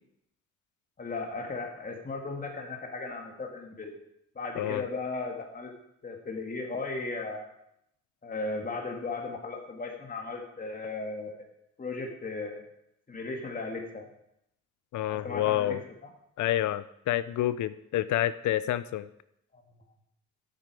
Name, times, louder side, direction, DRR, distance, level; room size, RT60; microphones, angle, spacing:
voice 1, 1.0-3.9 4.4-5.7 6.0-7.5 8.2-11.4 11.8-12.6 13.1-14.1 15.1-15.8 19.5-19.6, left 3 dB, 30° left, 2 dB, 2.0 m, -36 dB
voice 2, 14.9-15.8 16.4-19.1, left 13 dB, 75° left, 16 dB, 0.6 m, -28 dB
13.0 x 7.7 x 4.8 m, 0.78 s
cardioid pair, 90°, 30 cm